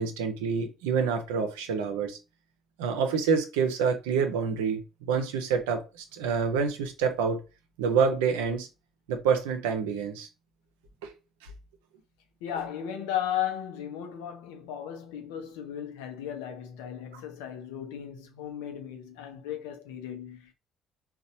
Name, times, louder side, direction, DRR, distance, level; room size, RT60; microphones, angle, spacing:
voice 1, 0.0-2.2 2.8-7.4 7.8-8.7 9.1-10.3 11.0-11.1, right 6 dB, 85° right, 0.6 m, -27 dB
voice 2, 12.4-20.5, left 10 dB, 85° left, 0.6 m, -35 dB
4.1 x 2.3 x 2.7 m
hypercardioid pair, 60°, 0 cm